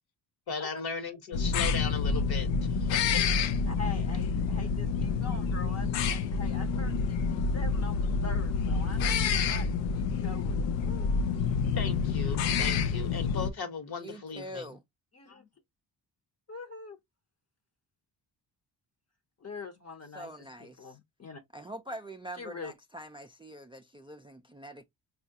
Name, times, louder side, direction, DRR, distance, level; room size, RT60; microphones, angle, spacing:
voice 1, 0.5-3.5 11.7-14.7, left 5 dB, 55° left, 1.2 m, -37 dB
sound 1, 1.3-13.5, left 5 dB, 85° left, 0.6 m, -28 dB
voice 2, 3.7-9.7 9.9-11.1 15.1-15.5 16.5-17.0 19.4-20.3 20.6-21.4 22.4-22.7, left 4 dB, 35° left, 0.8 m, -44 dB
voice 3, 14.0-14.8 20.1-21.0 21.5-24.8, right 1 dB, 15° right, 0.3 m, -44 dB
4.3 x 2.4 x 2.7 m
cardioid pair, 85°, 44 cm